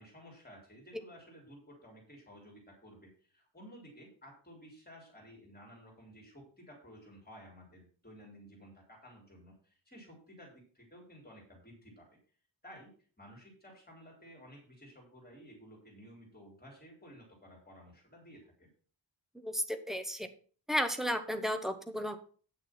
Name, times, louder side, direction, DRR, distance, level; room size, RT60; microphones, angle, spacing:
voice 1, 0.0-12.2 12.6-12.9 13.2-18.7, equal, 20° left, -1 dB, 3.6 m, -54 dB
voice 2, 19.4-20.3 20.7-22.2, equal, ahead, 8 dB, 0.9 m, -33 dB
8.9 x 6.5 x 5.9 m, 0.43 s
wide cardioid pair, 175°, 43 cm